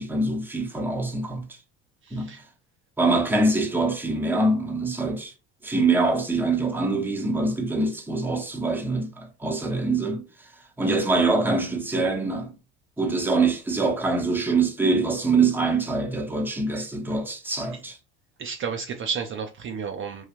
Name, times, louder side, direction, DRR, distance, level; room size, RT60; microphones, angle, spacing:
voice 1, 0.0-1.4 2.1-2.3 3.0-5.3 5.6-10.2 10.8-12.5 13.0-18.0, right 3 dB, 5° right, 0.8 m, -24 dB
voice 2, 2.0-2.4 16.7-16.8 17.7-17.8 18.4-20.2, right 6 dB, 40° right, 0.6 m, -32 dB
3.1 x 2.3 x 2.4 m
supercardioid pair, 85°, 31 cm